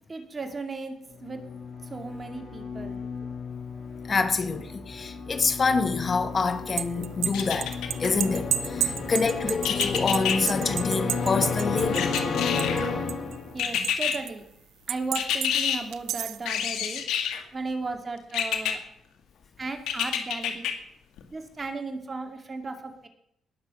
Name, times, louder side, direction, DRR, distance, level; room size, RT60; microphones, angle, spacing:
voice 1, 0.1-1.0 1.2-1.4 1.8-3.0 8.8-9.1 12.6-14.4 14.9-17.0 17.5-18.8 19.6-20.7 21.3-23.1, right 3 dB, 30° right, 2.3 m, -36 dB
sound 1, 1.1-13.7, left 4 dB, 65° left, 4.2 m, -32 dB
voice 2, 4.0-7.7 8.0-12.2, left 4 dB, 35° left, 1.4 m, -26 dB
sound 2, 6.5-12.8 13.1-14.3 14.9-15.5 15.9-16.4, right 11 dB, 80° right, 0.6 m, -31 dB
sound 3, 7.3-8.1 9.6-10.4 11.9-12.9 13.6-14.1 15.2-15.8 16.5-17.4 18.3-18.7 19.9-20.7 21.2-21.3, left 9 dB, 85° left, 2.0 m, -27 dB
19.0 x 6.8 x 7.1 m
cardioid pair, 90°, 0 cm